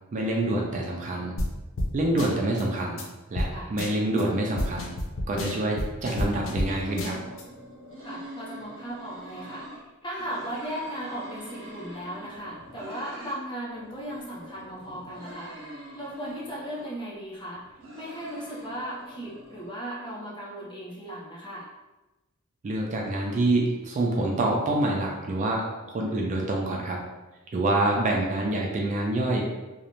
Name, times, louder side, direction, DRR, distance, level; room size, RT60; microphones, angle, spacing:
voice 1, 0.1-1.4 1.9-3.0 3.3-4.9 5.3-7.2 22.6-27.0 27.5-29.5, right 2 dB, 35° right, -1 dB, 0.3 m, -26 dB
sound 1, 1.4-1.5 1.8-1.9 2.2-2.6 3.0-3.1 3.4-3.5 3.8-4.2 4.6-6.7 7.0-7.4, left 1 dB, 65° left, 0.4 m, -30 dB
sound 2, 6.6-9.8 10.2-13.4 13.7-17.0 17.5-19.7, equal, 65° right, 0.7 m, -44 dB
voice 2, 8.0-15.5 15.9-21.7 28.0-28.2, right 1 dB, 20° left, -6 dB, 0.6 m, -37 dB
2.5 x 2.0 x 2.9 m, 1.1 s
head